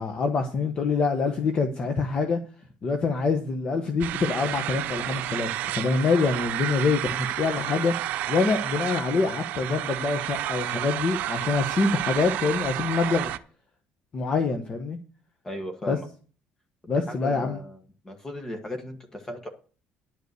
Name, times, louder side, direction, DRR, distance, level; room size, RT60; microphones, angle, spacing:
voice 1, 0.0-2.4 2.8-13.3 14.1-15.0 15.9-16.0 16.9-17.6, left 4 dB, 30° left, 1.1 m, -25 dB
sound 1, 4.0-13.4, right 13 dB, 65° right, 0.7 m, -31 dB
voice 2, 15.4-16.1 17.1-17.8 18.0-19.5, left 1 dB, 15° left, 1.4 m, -36 dB
11.0 x 5.3 x 8.1 m
cardioid pair, 155°, 3 cm